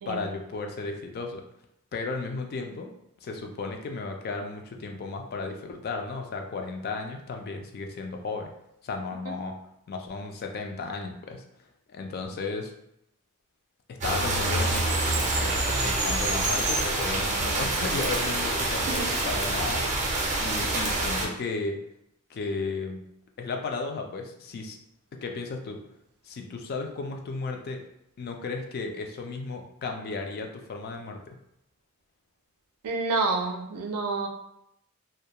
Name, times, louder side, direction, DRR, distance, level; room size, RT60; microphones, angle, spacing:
voice 1, 0.1-1.4 1.9-2.9 3.2-8.5 8.8-9.6 9.9-11.4 11.9-12.7 13.9-20.1 20.4-21.8 22.3-23.0 23.4-24.8 25.1-25.8 26.2-27.8 28.2-31.4, left 3 dB, 45° left, 4 dB, 0.3 m, -34 dB
sound 1, 14.0-21.3, right 2 dB, 35° right, 0.5 m, -26 dB
voice 2, 32.8-34.3, right 3 dB, 90° right, 3 dB, 0.4 m, -28 dB
2.3 x 2.1 x 2.8 m, 0.80 s
head